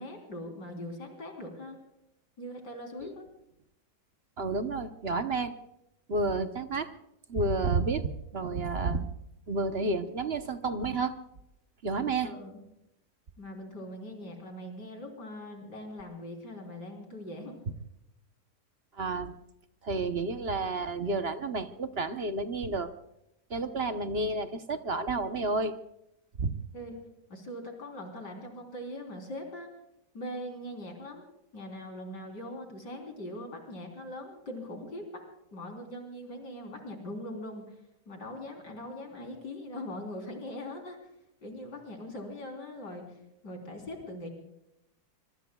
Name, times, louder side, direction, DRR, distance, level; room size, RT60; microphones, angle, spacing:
voice 1, 0.0-1.8 2.4-3.3 12.2-12.6 13.4-17.6 26.7-27.0 27.3-29.7 30.1-31.3 31.5-35.2 35.5-37.7 38.1-41.0 41.4-43.2 43.4-44.3, left 1 dB, 80° left, 2 dB, 4.4 m, -41 dB
voice 2, 4.4-5.5 6.1-6.9 7.3-9.1 9.5-11.2 11.8-12.3 19.0-19.3 19.8-22.9 23.5-25.8 26.4-26.5, right 3 dB, 45° right, 8 dB, 1.0 m, -30 dB
24.5 x 24.0 x 2.3 m, 0.83 s
omnidirectional pair, 1.8 m